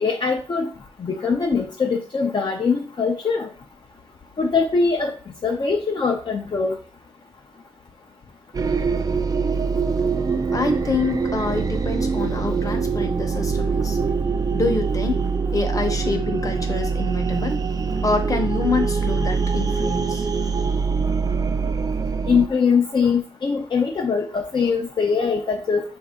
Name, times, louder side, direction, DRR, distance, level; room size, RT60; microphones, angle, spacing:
voice 1, 0.0-0.7 1.0-3.5 4.4-5.1 5.4-6.8 22.3-25.8, left 5 dB, 50° left, 0 dB, 0.6 m, -22 dB
sound 1, 8.5-22.5, right 5 dB, 35° right, 0.4 m, -23 dB
voice 2, 10.5-14.0 14.5-15.2 15.5-17.6 18.0-20.3, left 3 dB, 30° left, 4 dB, 0.9 m, -26 dB
4.7 x 2.7 x 3.6 m, 0.38 s
wide cardioid pair, 85°, 11 cm